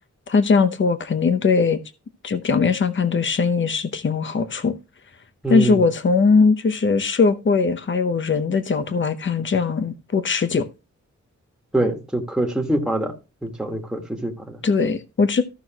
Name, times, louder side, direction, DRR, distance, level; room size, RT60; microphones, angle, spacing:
voice 1, 0.3-1.8 2.2-4.7 5.5-10.6 14.6-15.4, left 4 dB, 40° left, 0.9 m, -20 dB
voice 2, 5.4-5.8 11.7-13.1 13.4-14.6, right 1 dB, ahead, 1.6 m, -24 dB
14.5 x 6.2 x 2.9 m
wide cardioid pair, 175°, 29 cm